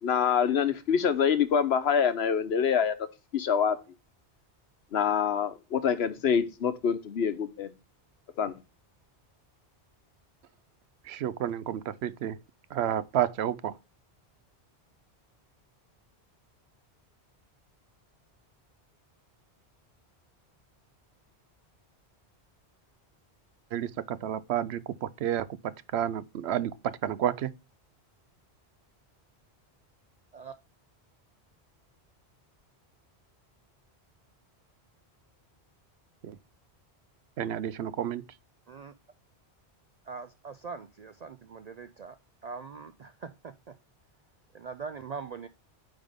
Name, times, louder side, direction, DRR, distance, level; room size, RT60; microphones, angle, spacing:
voice 1, 0.0-3.0 3.3-3.8 4.9-7.7 8.4-8.5, left 7 dB, 70° left, 1.0 m, -26 dB
voice 2, 11.0-12.4 12.7-13.8 23.7-27.5 36.2-36.4 37.4-38.2, right 10 dB, 75° right, 0.8 m, -31 dB
voice 3, 40.1-42.2 42.4-43.7 44.5-45.5, right 5 dB, 55° right, 0.4 m, -42 dB
9.0 x 3.6 x 3.4 m
omnidirectional pair, 1.1 m